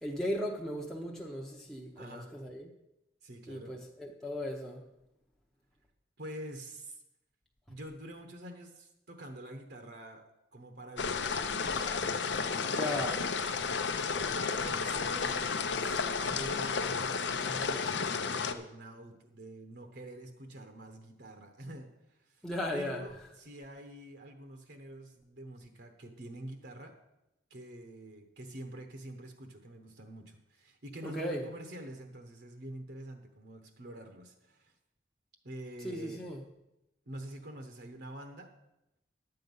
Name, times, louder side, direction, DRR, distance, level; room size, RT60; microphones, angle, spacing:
voice 1, 0.0-2.7 3.5-4.8 12.6-13.2 22.4-23.0 31.0-31.4 35.8-36.4, left 1 dB, 5° left, 0.7 m, -36 dB
voice 2, 2.0-2.3 3.2-3.7 6.2-7.0 7.7-13.1 13.9-14.0 14.3-16.0 16.3-27.0 27.5-34.7 35.4-36.2 37.1-38.5, right 1 dB, 60° right, 1.0 m, -47 dB
sound 1, 11.0-18.5, left 5 dB, 70° left, 0.7 m, -32 dB
11.0 x 7.8 x 5.4 m
head